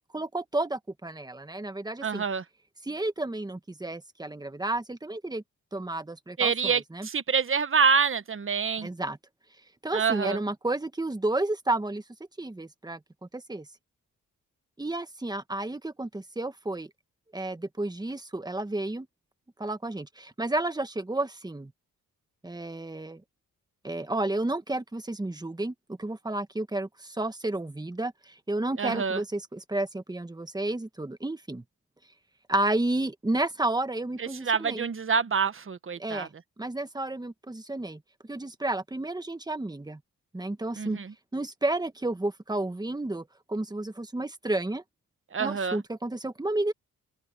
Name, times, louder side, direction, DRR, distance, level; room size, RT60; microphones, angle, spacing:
voice 1, 0.0-2.2 2.8-5.4 5.7-7.1 8.8-9.2 9.8-12.0 12.4-13.7 14.8-16.9 17.3-19.1 19.6-21.7 22.4-23.2 23.8-31.6 32.5-34.8 36.0-38.0 38.3-40.0 40.3-41.0 41.3-44.8 45.4-46.7, right 2 dB, 10° right, 1.5 m, -31 dB
voice 2, 2.0-2.4 6.4-8.9 9.9-10.4 28.8-29.2 34.2-36.3 40.8-41.1 45.3-45.8, right 6 dB, 40° right, 1.3 m, -26 dB
cardioid pair, 85°, 33 cm